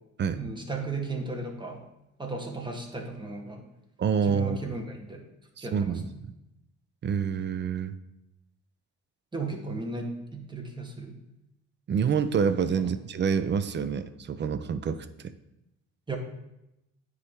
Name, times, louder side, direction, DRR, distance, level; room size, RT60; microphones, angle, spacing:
voice 1, 0.3-1.8 2.2-3.6 4.2-5.2 5.6-6.2 9.3-11.2 16.1-16.2, right 3 dB, 15° right, 1 dB, 1.2 m, -35 dB
voice 2, 4.0-4.6 5.6-6.3 7.0-7.9 11.9-15.1, right 6 dB, 40° right, 12 dB, 0.4 m, -27 dB
9.5 x 3.2 x 3.6 m, 0.90 s
cardioid pair, 90°, 30 cm